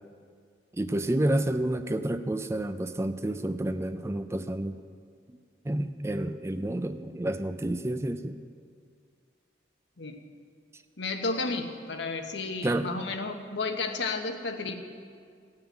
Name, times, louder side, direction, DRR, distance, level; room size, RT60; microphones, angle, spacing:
voice 1, 0.8-4.8 5.6-8.4 12.6-12.9, right 1 dB, 15° right, 10 dB, 0.4 m, -29 dB
voice 2, 11.0-14.7, left 3 dB, 80° left, 5 dB, 1.1 m, -32 dB
16.5 x 5.7 x 8.9 m, 2.2 s
head